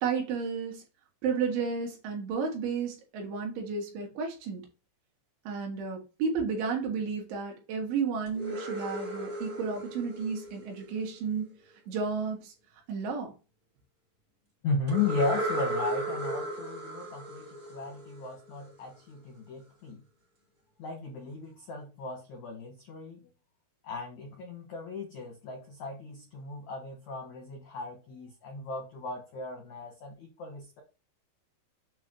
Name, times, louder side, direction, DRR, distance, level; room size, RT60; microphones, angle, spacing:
voice 1, 0.0-0.8 1.2-4.6 5.5-11.5 11.9-12.5 12.9-13.3, right 5 dB, 75° right, 3.9 m, -32 dB
sound 1, 8.3-11.2 14.9-18.6, right 1 dB, 60° right, 0.7 m, -35 dB
voice 2, 14.6-20.0 20.8-23.3 23.8-30.8, left 3 dB, 80° left, 1.6 m, -36 dB
8.1 x 3.0 x 5.3 m
omnidirectional pair, 5.3 m